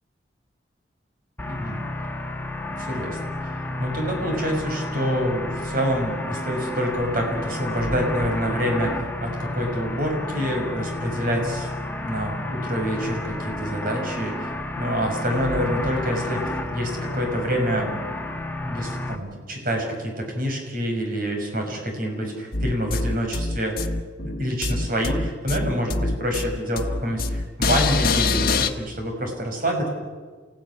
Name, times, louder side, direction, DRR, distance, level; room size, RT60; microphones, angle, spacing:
sound 1, 1.4-19.2, left 2 dB, 10° left, 1.6 m, -31 dB
voice 1, 1.5-1.8 2.7-8.9 9.2-18.3 18.6-23.8 24.2-29.9, equal, 50° right, 2 dB, 6.2 m, -27 dB
sound 2, 22.5-28.7, left 3 dB, 50° left, 1.4 m, -24 dB
29.0 x 17.0 x 9.8 m, 1.5 s
head